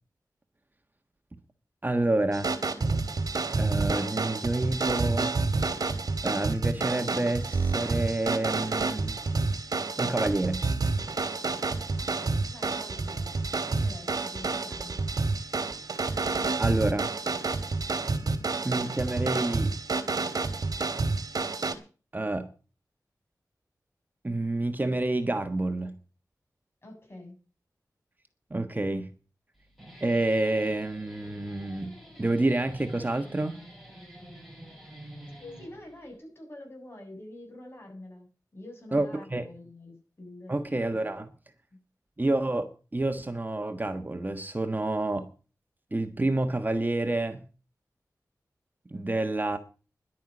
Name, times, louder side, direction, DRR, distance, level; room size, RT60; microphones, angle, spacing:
voice 1, 1.8-2.5 3.6-5.4 6.2-9.2 10.0-10.6 15.9-16.0 16.5-17.1 18.6-19.7 22.1-22.5 24.2-25.9 28.5-29.1 30.0-33.6 38.9-39.5 40.5-41.3 42.2-45.3 45.9-47.4 48.9-49.6, right 2 dB, 25° right, 1.4 m, -28 dB
sound 1, 2.3-21.7, right 3 dB, 65° right, 2.0 m, -29 dB
voice 2, 12.0-13.3 13.7-15.0 26.8-27.4 35.4-40.6 41.1-41.2, left 1 dB, 35° left, 7.2 m, -46 dB
Guitar, 29.5-36.2, equal, ahead, 6.8 m, -48 dB
11.0 x 9.2 x 7.8 m
wide cardioid pair, 70°, 7 cm